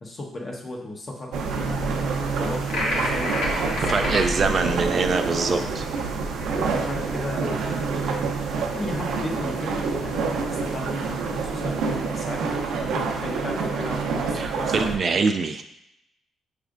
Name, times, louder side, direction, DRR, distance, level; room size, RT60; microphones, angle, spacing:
voice 1, 0.0-3.4 3.7-4.9 5.3-5.7 6.5-12.5 12.8-15.4, left 1 dB, 35° left, 0 dB, 1.0 m, -35 dB
sound 1, 1.3-15.0, right 4 dB, 85° right, 0.6 m, -27 dB
sound 2, 2.7-4.3, left 1 dB, 85° left, 1.1 m, -27 dB
voice 2, 3.9-5.8 14.3-15.6, right 4 dB, 45° right, 7 dB, 0.3 m, -24 dB
5.9 x 3.2 x 2.5 m, 0.83 s
cardioid pair, 90°, 0 cm